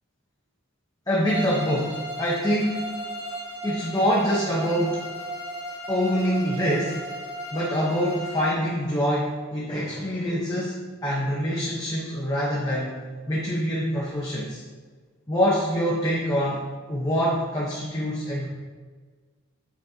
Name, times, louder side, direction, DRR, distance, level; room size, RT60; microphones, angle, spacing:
voice 1, 1.1-2.9 3.6-5.0 5.9-7.0 7.5-13.0 13.3-14.6 15.3-16.6 16.9-18.5, equal, 20° left, -6 dB, 1.0 m, -25 dB
Bowed string instrument, 1.2-8.7, right 1 dB, 25° right, 2.0 m, -35 dB
7.5 x 6.0 x 2.8 m, 1.5 s
head